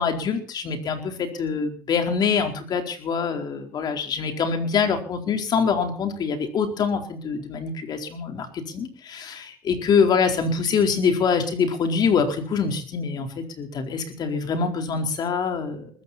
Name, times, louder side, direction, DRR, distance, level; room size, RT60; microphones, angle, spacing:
voice 1, 0.0-16.0, left 5 dB, 55° left, 5 dB, 4.3 m, -25 dB
20.5 x 15.0 x 4.3 m, 0.43 s
cardioid pair, 100°, 8 cm